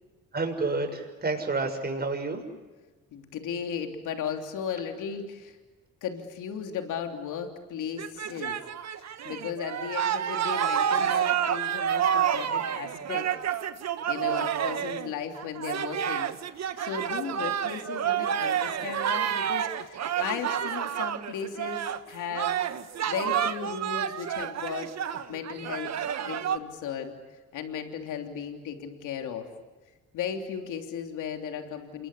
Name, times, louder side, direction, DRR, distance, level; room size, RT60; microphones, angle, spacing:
voice 1, 0.3-2.4, right 3 dB, 30° right, 4 dB, 6.7 m, -29 dB
voice 2, 3.1-5.6 6.0-8.6 9.2-13.3 14.1-16.3 16.8-22.6 23.1-24.9 25.3-25.9 26.2-27.1 27.5-29.5 30.1-32.1, left 7 dB, 85° left, 4 dB, 3.2 m, -36 dB
sound 1, 8.0-22.0 22.3-26.6, right 9 dB, 60° right, 1.7 m, -29 dB
28.5 x 22.5 x 8.5 m, 1.3 s
cardioid pair, 90°, 30 cm